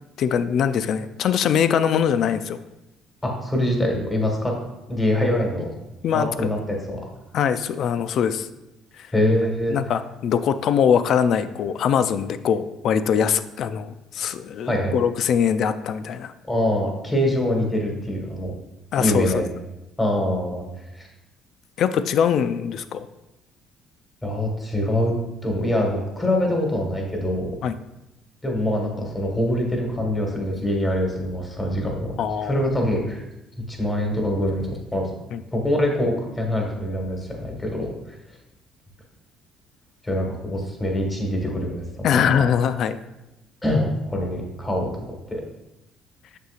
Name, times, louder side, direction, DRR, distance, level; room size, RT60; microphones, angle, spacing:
voice 1, 0.2-2.6 6.0-6.3 7.3-8.5 9.7-16.3 18.9-19.5 21.8-23.1 27.6-27.7 32.2-32.6 35.3-35.4 42.0-43.0, left 8 dB, 60° left, 12 dB, 0.3 m, -22 dB
voice 2, 3.2-4.5 4.9-5.7 6.1-7.0 9.1-9.7 14.6-15.0 16.5-18.5 19.0-19.4 20.0-20.6 20.9-21.1 24.2-25.1 25.4-27.5 28.4-32.1 32.4-33.2 33.7-35.1 35.5-38.2 40.0-42.3 43.6-45.4, left 1 dB, 15° left, 1 dB, 1.5 m, -24 dB
6.6 x 6.5 x 2.4 m, 0.94 s
cardioid pair, 105°, 0 cm